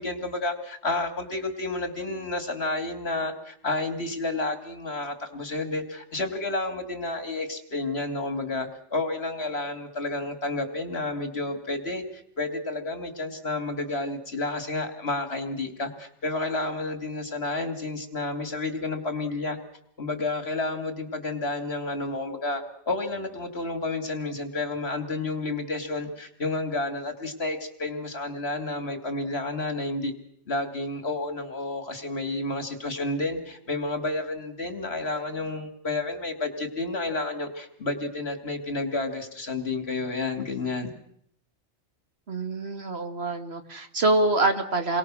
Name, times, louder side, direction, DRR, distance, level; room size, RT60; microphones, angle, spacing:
voice 1, 0.0-19.6 20.0-30.1 30.5-40.9, left 2 dB, 60° left, 8 dB, 2.9 m, -30 dB
voice 2, 42.3-45.0, right 2 dB, 60° right, 7 dB, 2.2 m, -25 dB
29.0 x 23.0 x 6.3 m, 0.71 s
omnidirectional pair, 1.2 m